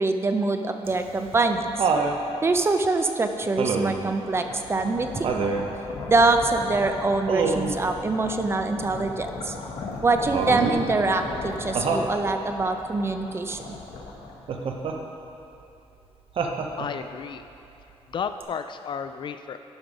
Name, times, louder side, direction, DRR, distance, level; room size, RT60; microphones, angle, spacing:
voice 1, 0.0-1.9 2.4-5.3 6.1-9.5 10.0-13.7, right 3 dB, 20° right, 6 dB, 0.5 m, -24 dB
Laughter, 0.9-2.2 3.6-4.1 5.2-5.7 7.3-7.8 10.3-10.8 11.8-12.1 14.5-15.0 16.4-17.0 18.4-18.5, right 5 dB, 55° right, 0.8 m, -26 dB
sound 1, 4.0-14.9, left 3 dB, 85° left, 1.4 m, -37 dB
voice 2, 16.8-17.4 18.1-19.6, left 6 dB, 45° left, 9 dB, 0.4 m, -32 dB
12.0 x 5.3 x 5.2 m, 2.7 s
cardioid pair, 135°, 11 cm